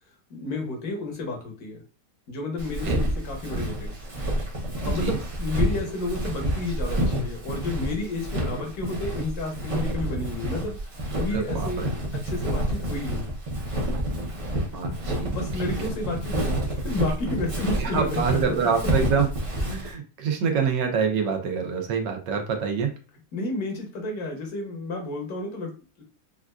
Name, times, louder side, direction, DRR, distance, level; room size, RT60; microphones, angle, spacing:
voice 1, 0.3-1.8 2.3-4.0 4.7-10.8 11.2-11.8 12.2-13.3 15.3-18.7 23.3-26.0, left 2 dB, 60° left, 1 dB, 1.5 m, -31 dB
Walk footsteps, 2.6-19.9, equal, 55° right, 0.3 m, -29 dB
voice 2, 4.8-5.2 11.3-11.9 14.7-15.4 17.8-19.3 19.7-22.9, right 6 dB, 80° right, 3 dB, 1.4 m, -26 dB
4.3 x 2.4 x 2.3 m, 0.35 s
omnidirectional pair, 1.9 m